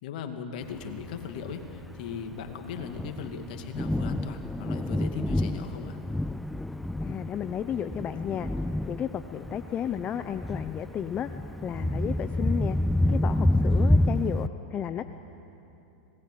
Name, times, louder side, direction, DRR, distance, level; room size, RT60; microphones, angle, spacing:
voice 1, 0.0-6.0, left 6 dB, 60° left, 6 dB, 2.5 m, -38 dB
Thunder, 0.8-14.5, left 1 dB, 5° left, 0.4 m, -28 dB
voice 2, 7.0-8.5 8.9-11.3 11.6-12.8 13.1-15.0, left 9 dB, 30° left, 10 dB, 0.8 m, -33 dB
26.5 x 20.0 x 8.6 m, 2.9 s
hypercardioid pair, 105°, 5 cm